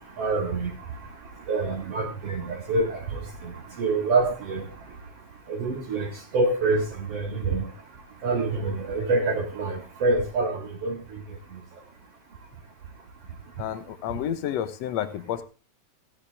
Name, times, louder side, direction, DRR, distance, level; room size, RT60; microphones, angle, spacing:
voice 1, 0.2-0.7 1.5-3.0 3.4-3.5 3.8-4.6 5.5-6.1 6.3-6.8 7.1-7.6 8.2-10.9, right 3 dB, 55° right, 1 dB, 3.0 m, -25 dB
voice 2, 13.6-15.4, left 10 dB, 70° left, 11 dB, 2.1 m, -30 dB
16.5 x 10.0 x 3.5 m, 0.33 s
omnidirectional pair, 3.4 m